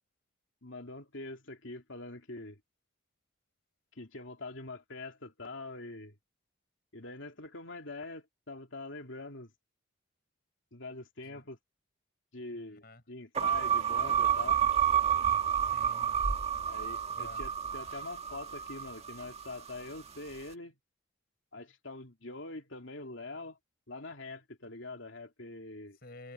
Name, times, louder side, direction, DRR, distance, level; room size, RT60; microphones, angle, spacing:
voice 1, 0.6-2.6 3.9-6.2 6.9-9.5 10.7-11.6 12.3-14.6 16.7-20.8 21.5-23.6 23.9-26.0, left 2 dB, 65° left, 2.9 m, -44 dB
voice 2, 12.6-13.0 15.6-16.2 17.1-17.4 26.0-26.3, left 2 dB, 45° left, 5.2 m, -51 dB
sound 1, 13.4-19.7, right 8 dB, 30° right, 1.7 m, -29 dB
head